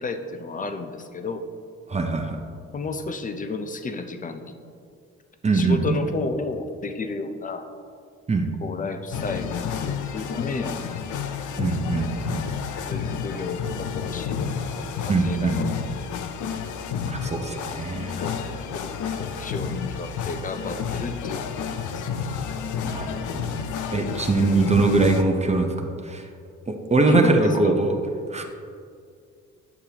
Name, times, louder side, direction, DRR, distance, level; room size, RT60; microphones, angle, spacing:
voice 1, 0.0-1.5 2.7-4.5 5.5-7.7 8.6-9.8 10.1-10.9 11.6-11.7 12.9-14.4 14.8-15.6 18.1-22.0 27.1-27.7, left 3 dB, 25° left, 8 dB, 0.6 m, -32 dB
voice 2, 1.9-2.4 5.4-6.0 8.3-8.5 11.6-12.5 15.1-15.7 17.0-18.1 22.8-23.6 23.9-25.7 26.0-26.3 26.7-28.0 28.3-28.4, right 3 dB, 20° right, 4 dB, 0.7 m, -22 dB
sound 1, 9.1-25.2, left 6 dB, 80° left, 0.6 m, -30 dB
9.4 x 6.6 x 2.9 m, 2.3 s
cardioid pair, 90°, 30 cm